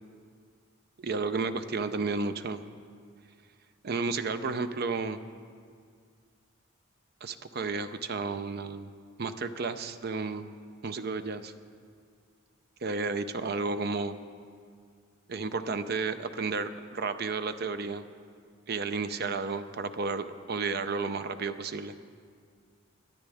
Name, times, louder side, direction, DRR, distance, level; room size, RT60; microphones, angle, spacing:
voice 1, 1.0-2.6 3.8-5.2 7.2-8.9 9.2-10.5 10.8-11.5 12.8-14.2 15.3-18.1 18.7-21.9, right 4 dB, 50° right, 10 dB, 0.5 m, -32 dB
22.5 x 10.0 x 3.5 m, 2.1 s
head